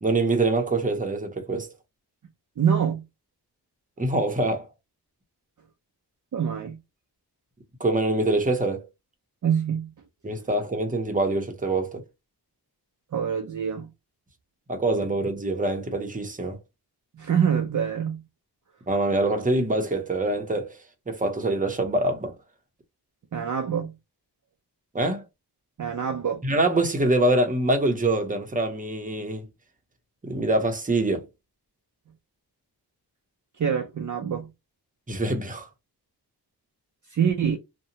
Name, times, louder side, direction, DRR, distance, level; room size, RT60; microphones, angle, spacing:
voice 1, 0.0-1.7 4.0-4.7 7.8-8.9 10.2-12.0 14.7-16.6 18.9-20.8 21.1-22.3 24.9-25.2 26.4-29.5 30.2-31.2 35.1-35.7, right 2 dB, 20° right, 0.7 m, -24 dB
voice 2, 2.6-3.1 6.3-6.8 9.4-9.9 13.1-13.9 17.1-18.2 23.3-23.9 25.8-26.4 33.6-34.5 37.1-37.6, right 7 dB, 50° right, 0.5 m, -25 dB
2.8 x 2.2 x 2.7 m
wide cardioid pair, 80°, 41 cm